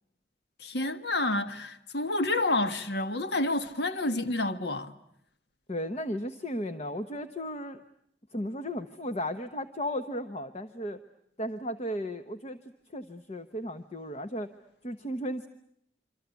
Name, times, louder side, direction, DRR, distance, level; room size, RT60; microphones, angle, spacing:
voice 1, 0.6-4.9, left 2 dB, 65° left, 1.5 m, -29 dB
voice 2, 5.7-7.8 8.3-11.0 11.4-12.6 12.9-14.5 14.8-15.5, equal, 35° left, 1.1 m, -35 dB
27.0 x 26.0 x 8.3 m
head